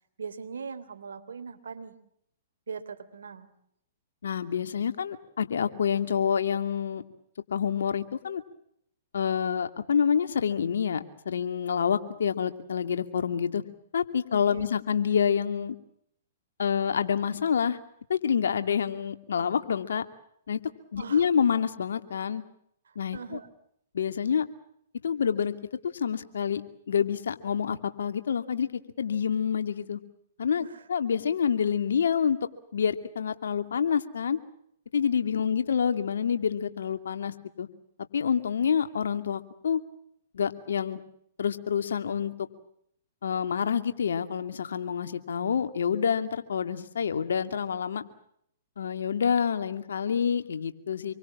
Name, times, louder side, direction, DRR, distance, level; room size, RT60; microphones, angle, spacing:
voice 1, 0.2-1.9 2.7-3.5 14.3-14.7 21.0-21.3 22.9-23.5 30.6-30.8 35.4-35.6, right 5 dB, 80° right, 10 dB, 3.4 m, -41 dB
voice 2, 4.2-7.0 7.5-8.4 9.1-13.6 13.9-15.8 16.6-17.8 18.1-20.0 20.5-20.6 20.9-22.4 23.0-23.4 23.9-24.5 25.0-25.6 25.9-26.6 26.9-30.0 30.4-32.4 32.7-34.4 34.9-37.7 38.1-39.8 40.3-41.0 41.4-42.3 43.2-48.0 48.8-51.1, left 7 dB, 75° left, 9 dB, 2.5 m, -27 dB
27.5 x 23.5 x 7.4 m, 0.72 s
hypercardioid pair, 120°, 0 cm